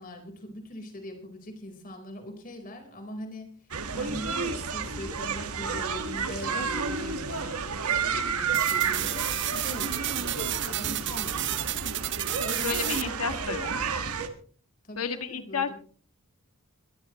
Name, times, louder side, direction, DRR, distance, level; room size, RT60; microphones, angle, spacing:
voice 1, 0.0-3.5 3.9-7.6 8.4-11.9 12.4-13.1 13.4-13.9 14.8-15.8, left 1 dB, 40° left, 4 dB, 4.4 m, -42 dB
sound 1, 3.7-14.3, right 5 dB, 85° right, 1.8 m, -31 dB
sound 2, 8.5-13.0, right 14 dB, 55° right, 0.8 m, -32 dB
voice 2, 12.4-13.7 15.0-15.8, left 6 dB, 90° left, 9 dB, 1.6 m, -32 dB
22.5 x 14.5 x 3.1 m, 0.43 s
head